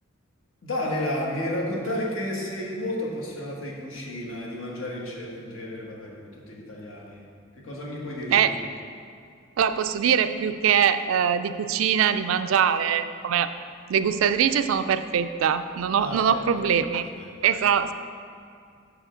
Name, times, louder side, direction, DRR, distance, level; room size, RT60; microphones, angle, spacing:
voice 1, 0.6-7.3 7.6-8.6 16.0-16.8 17.0-17.6, left 1 dB, 80° left, -2 dB, 1.3 m, -32 dB
voice 2, 9.6-13.5 13.9-17.0 17.4-17.9, right 8 dB, 85° right, 11 dB, 0.3 m, -22 dB
6.7 x 4.9 x 5.0 m, 2.3 s
head